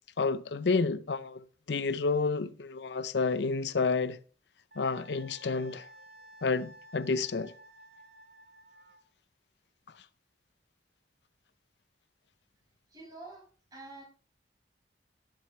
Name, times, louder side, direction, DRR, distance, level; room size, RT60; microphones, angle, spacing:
voice 1, 0.2-4.2 4.8-5.9 6.4-7.5, left 4 dB, 75° left, 0.6 m, -30 dB
Wind instrument woodwind instrument, 4.7-9.0, right 1 dB, 75° right, 2.0 m, -54 dB
voice 2, 12.9-13.5 13.7-14.0, right 2 dB, 20° right, 5.8 m, -47 dB
18.0 x 7.7 x 3.2 m
head